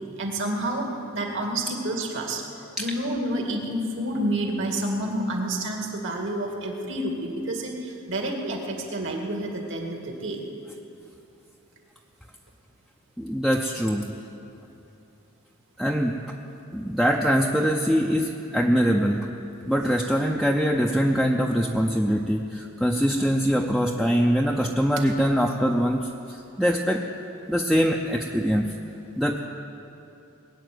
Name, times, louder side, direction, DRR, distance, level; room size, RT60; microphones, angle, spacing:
voice 1, 0.2-2.4 2.8-10.4, right 1 dB, 60° right, 1 dB, 2.2 m, -29 dB
voice 2, 13.2-14.1 15.8-16.2 16.7-19.3 19.7-27.1 27.5-28.6 29.2-29.5, equal, ahead, 0 dB, 0.6 m, -23 dB
20.5 x 7.0 x 9.4 m, 2.8 s
head